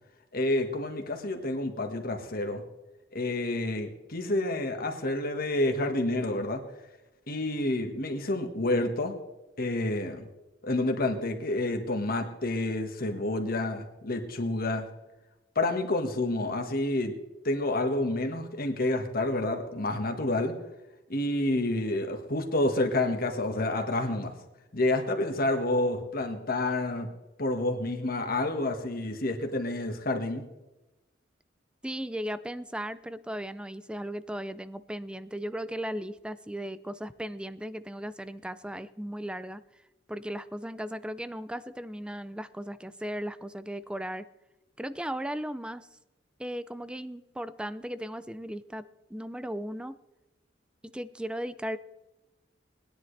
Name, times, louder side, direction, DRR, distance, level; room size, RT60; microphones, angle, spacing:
voice 1, 0.3-2.6 3.1-6.6 7.3-9.1 9.6-10.3 10.6-14.9 15.5-17.1 17.4-20.5 21.1-24.3 24.7-27.1 27.4-30.4, left 2 dB, 50° left, 5 dB, 1.6 m, -29 dB
voice 2, 31.8-39.6 40.1-44.3 44.8-45.9 46.4-49.9 50.8-51.8, equal, 5° right, 15 dB, 0.4 m, -36 dB
19.5 x 10.5 x 3.3 m, 1.0 s
head